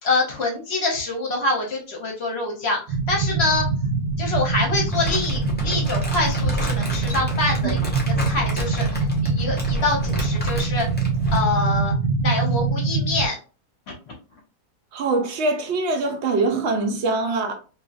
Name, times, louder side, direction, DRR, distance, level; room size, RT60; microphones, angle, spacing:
voice 1, 0.0-3.6 4.2-7.8 8.2-10.9 11.3-11.9 12.2-13.4, left 2 dB, 55° left, 0.9 m, -25 dB
sound 1, 2.9-13.3, right 4 dB, 75° right, 1.1 m, -24 dB
Crumpling crinkling, 4.9-11.5, left 1 dB, 15° left, 0.4 m, -32 dB
voice 2, 14.9-17.5, right 3 dB, 60° right, 0.7 m, -23 dB
2.7 x 2.4 x 2.5 m
omnidirectional pair, 1.6 m